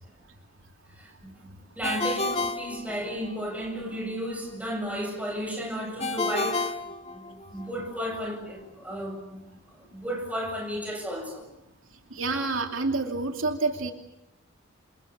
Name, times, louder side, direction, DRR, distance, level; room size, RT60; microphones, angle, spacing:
voice 1, 1.0-1.5 1.7-6.7 7.1-9.4 9.8-11.5, equal, 5° right, 8.0 m, -33 dB
Ringtone, 1.8-3.5 6.0-7.7, left 3 dB, 30° left, 3.2 m, -30 dB
voice 2, 12.1-13.9, right 3 dB, 75° right, 2.8 m, -28 dB
29.0 x 27.5 x 6.8 m
head